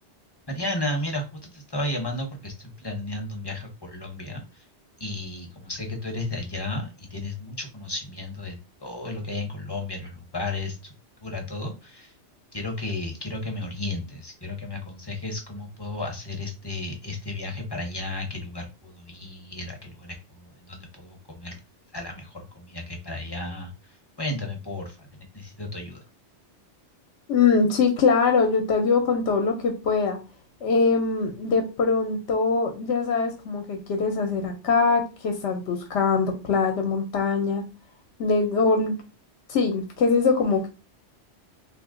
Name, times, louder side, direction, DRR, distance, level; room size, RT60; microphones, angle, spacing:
voice 1, 0.5-4.6 5.0-10.9 11.2-12.1 12.5-21.6 21.9-26.0, left 2 dB, 25° left, 0.6 m, -33 dB
voice 2, 27.3-30.2 30.6-37.6 38.2-38.9 39.5-40.7, left 4 dB, 75° left, 0.9 m, -22 dB
2.8 x 2.5 x 3.6 m
omnidirectional pair, 1.2 m